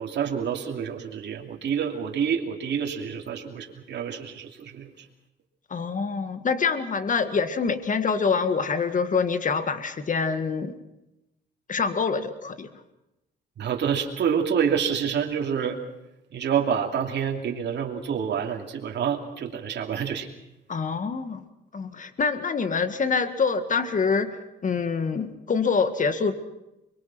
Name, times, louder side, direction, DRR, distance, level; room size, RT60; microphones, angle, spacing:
voice 1, 0.0-5.0 13.6-15.8 16.3-20.3, right 7 dB, 60° right, 1 dB, 2.9 m, -27 dB
voice 2, 5.7-10.8 11.7-12.7 20.7-21.4 21.7-26.3, left 5 dB, 40° left, 10 dB, 1.9 m, -25 dB
23.5 x 22.5 x 6.1 m, 0.91 s
cardioid pair, 90°, 20 cm